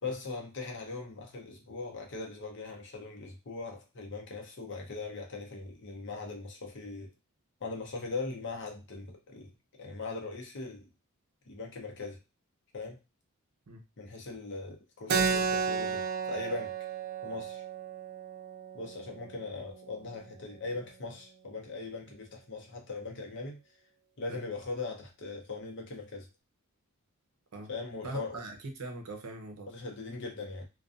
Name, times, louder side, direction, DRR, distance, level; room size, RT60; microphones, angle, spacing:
voice 1, 0.0-7.1 7.6-9.5 9.8-10.9 11.5-12.2 12.7-13.0 14.0-16.8 17.2-17.6 18.7-23.6 24.2-26.3 27.7-28.4 29.7-30.7, left 3 dB, 55° left, 1 dB, 0.7 m, -40 dB
Keyboard (musical), 15.1-20.2, right 6 dB, 45° right, 0.3 m, -33 dB
voice 2, 28.0-29.7, right 2 dB, 80° right, 4 dB, 0.6 m, -41 dB
2.4 x 2.2 x 2.4 m, 0.27 s
head